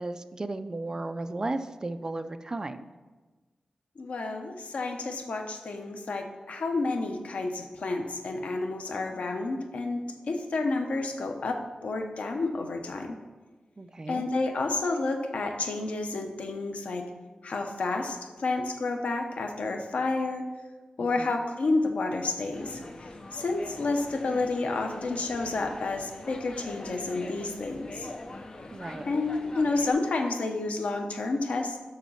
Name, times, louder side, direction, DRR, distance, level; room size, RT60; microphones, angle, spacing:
voice 1, 0.0-2.9 13.8-14.2 21.2-21.4 28.7-29.1, right 2 dB, 30° right, 10 dB, 0.4 m, -34 dB
voice 2, 4.0-13.1 14.1-17.1 17.4-20.4 21.0-22.8 23.3-28.1 29.0-31.8, left 3 dB, 80° left, 4 dB, 0.9 m, -30 dB
sound 1, 22.5-29.9, left 2 dB, 40° left, 0.7 m, -43 dB
7.2 x 6.3 x 5.6 m, 1.3 s
wide cardioid pair, 115°, 2 cm